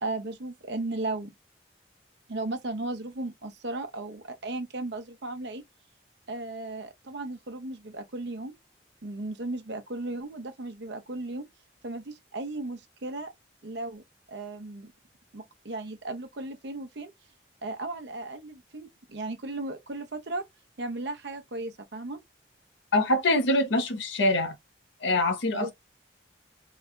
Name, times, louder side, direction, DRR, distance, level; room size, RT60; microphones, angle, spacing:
voice 1, 0.0-1.3 2.3-5.6 6.3-8.5 9.0-11.5 11.8-13.3 13.6-14.0 14.3-14.9 15.3-17.1 17.6-20.5 20.8-22.2 25.5-25.7, right 2 dB, 65° right, 0.7 m, -35 dB
voice 2, 22.9-24.5 25.0-25.7, left 1 dB, 75° left, 0.8 m, -24 dB
4.0 x 2.2 x 2.3 m
head